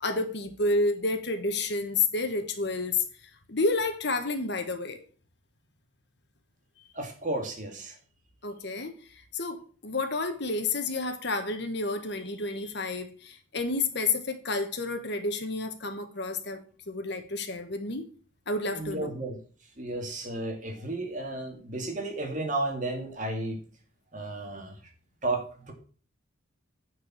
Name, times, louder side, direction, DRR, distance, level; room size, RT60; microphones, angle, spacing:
voice 1, 0.0-5.0 8.4-16.6 16.9-18.1 18.5-19.1, left 3 dB, 55° left, 1.3 m, -30 dB
voice 2, 6.9-7.9 18.7-19.4 19.8-23.6 24.1-24.8 25.2-25.7, right 2 dB, 40° right, 2.0 m, -33 dB
9.5 x 4.7 x 7.1 m
head